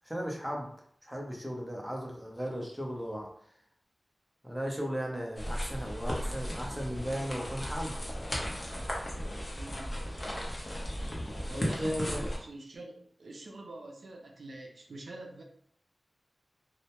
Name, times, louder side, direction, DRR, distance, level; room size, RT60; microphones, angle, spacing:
voice 1, 0.0-0.7 1.0-3.3 4.4-8.1 11.5-12.2, equal, ahead, -1 dB, 0.6 m, -36 dB
sound 1, 5.4-12.4, equal, 35° left, 0.7 m, -36 dB
voice 2, 9.5-10.1 11.5-15.4, right 2 dB, 80° right, 1 dB, 0.4 m, -46 dB
2.1 x 2.0 x 2.9 m, 0.63 s
wide cardioid pair, 65°, 0 cm